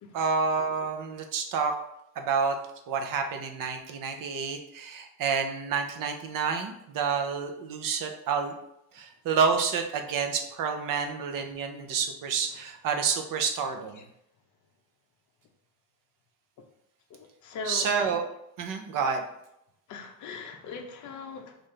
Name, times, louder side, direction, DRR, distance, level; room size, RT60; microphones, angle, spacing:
voice 1, 0.1-1.7 2.2-2.6 2.9-8.6 8.9-14.0 17.6-18.2 18.6-19.2, right 5 dB, 45° right, 5 dB, 0.7 m, -29 dB
voice 2, 17.1-17.9 19.9-21.6, left 5 dB, 40° left, 3 dB, 0.7 m, -40 dB
5.6 x 2.6 x 3.2 m, 0.79 s
cardioid pair, 160°, 45 cm